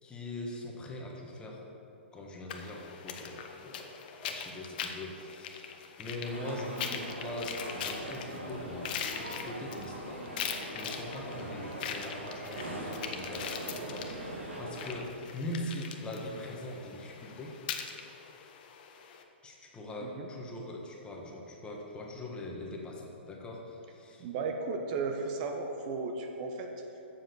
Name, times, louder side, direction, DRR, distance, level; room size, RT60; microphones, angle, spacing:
voice 1, 0.0-1.6 2.1-3.9 4.2-5.7 6.0-10.2 10.7-17.6 19.4-24.3, left 1 dB, 15° left, -1 dB, 1.4 m, -42 dB
sound 1, 2.5-19.2, left 7 dB, 50° left, 0.9 m, -42 dB
sound 2, 6.2-15.0, right 1 dB, 90° right, 2.0 m, -41 dB
voice 2, 24.2-26.7, right 4 dB, 45° right, 4 dB, 0.9 m, -35 dB
7.3 x 7.3 x 6.7 m, 2.9 s
hypercardioid pair, 125°, 6 cm